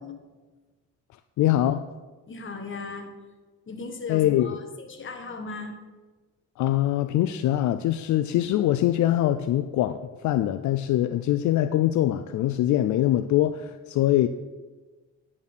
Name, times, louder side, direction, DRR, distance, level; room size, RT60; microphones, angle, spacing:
voice 1, 1.4-1.9 4.1-4.6 6.6-14.3, left 13 dB, 75° left, 11 dB, 0.5 m, -23 dB
voice 2, 2.3-3.1 3.7-5.8, left 3 dB, 40° left, 6 dB, 1.5 m, -37 dB
10.5 x 4.4 x 7.0 m, 1.3 s
cardioid pair, 90°, 30 cm